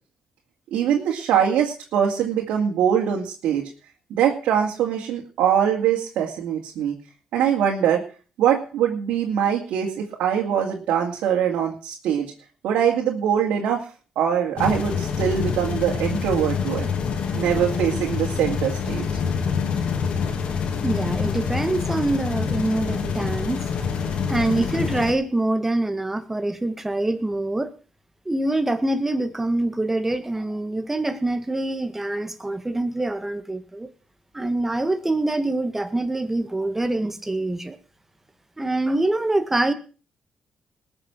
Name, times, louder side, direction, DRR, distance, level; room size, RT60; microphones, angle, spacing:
voice 1, 0.7-3.7 4.1-7.0 7.3-8.0 8.4-12.3 12.6-13.9 14.2-16.9 17.3-19.1, right 9 dB, 85° right, -2 dB, 2.5 m, -22 dB
sound 1, 14.6-25.1, left 6 dB, 65° left, 2.9 m, -26 dB
voice 2, 20.8-23.7 24.3-27.7 28.3-33.9 34.3-37.8 38.6-39.7, right 2 dB, 15° right, 10 dB, 1.9 m, -25 dB
20.0 x 7.0 x 6.2 m, 0.38 s
cardioid pair, 85°, 2 cm